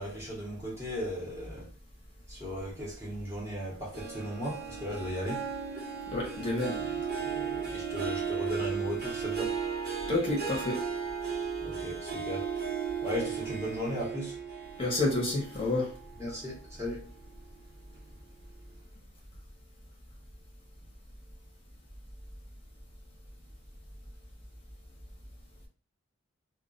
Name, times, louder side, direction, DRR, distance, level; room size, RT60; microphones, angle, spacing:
voice 1, 0.0-1.7 2.3-5.4 6.8-9.5 11.6-12.5 13.0-14.4 16.2-17.0, equal, 15° right, 0.7 m, -37 dB
Harp, 3.9-16.7 17.1-17.5 18.0-18.1, right 6 dB, 50° right, 0.7 m, -36 dB
voice 2, 6.1-6.8 10.1-10.8 14.8-15.9, left 2 dB, 25° left, 0.7 m, -29 dB
2.2 x 2.1 x 3.7 m
head